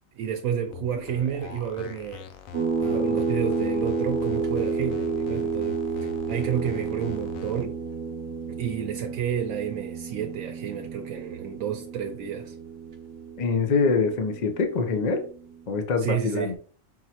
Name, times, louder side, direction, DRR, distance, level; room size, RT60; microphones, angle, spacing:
voice 1, 0.2-2.2 2.8-7.8 8.5-12.5 16.0-16.5, right 8 dB, 85° right, 1.0 m, -31 dB
sound 1, 0.6-7.6, left 8 dB, 85° left, 1.0 m, -43 dB
sound 2, 2.5-15.6, right 4 dB, 65° right, 1.0 m, -31 dB
voice 2, 13.4-15.2 15.7-16.6, left 4 dB, 45° left, 0.6 m, -24 dB
5.6 x 3.0 x 2.8 m
omnidirectional pair, 1.4 m